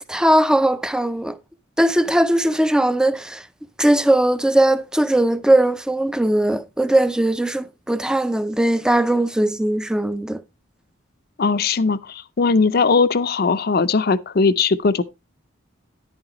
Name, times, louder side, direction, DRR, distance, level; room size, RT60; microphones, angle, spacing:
voice 1, 0.1-1.4 1.8-3.5 3.8-10.4, right 1 dB, 5° right, 0.4 m, -19 dB
voice 2, 11.4-15.0, left 4 dB, 50° left, 0.5 m, -19 dB
10.5 x 8.8 x 3.0 m
head